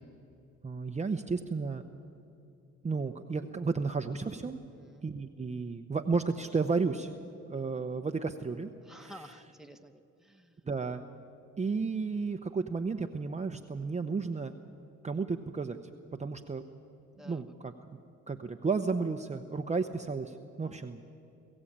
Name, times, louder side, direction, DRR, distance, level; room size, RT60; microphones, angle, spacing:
voice 1, 0.6-1.9 2.8-4.6 5.0-7.1 7.5-8.7 9.0-9.2 10.7-11.0 11.6-14.5 15.0-15.8 16.2-16.6 17.2-18.0 18.3-21.0, right 4 dB, 25° right, 6 dB, 0.8 m, -33 dB
voice 2, 8.8-10.6 17.2-17.4 20.6-20.8, equal, ahead, 6 dB, 1.1 m, -52 dB
22.5 x 15.0 x 8.7 m, 2.7 s
cardioid pair, 90°, 30 cm